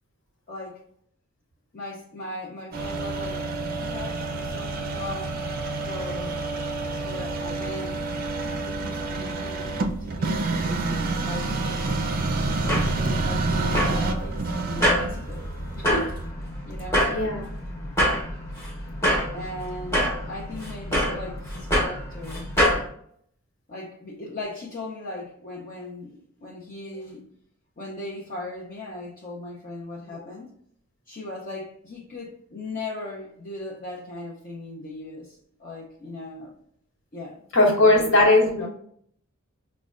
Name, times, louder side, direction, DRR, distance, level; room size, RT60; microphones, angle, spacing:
voice 1, 0.5-0.8 1.7-5.4 5.8-6.4 7.0-8.0 8.6-11.5 12.4-15.5 15.8-16.2 16.6-17.1 19.3-22.5 23.7-27.3 27.8-30.5 31.1-36.6 37.1-38.1 38.6-38.7, left 2 dB, 40° left, 0.5 m, -38 dB
sound 1, 2.7-16.3, right 3 dB, 45° right, 0.4 m, -28 dB
sound 2, 12.4-22.8, equal, 15° left, 0.9 m, -26 dB
voice 2, 17.1-17.4 37.5-38.7, left 2 dB, 60° left, 1.1 m, -18 dB
5.1 x 2.1 x 2.4 m
head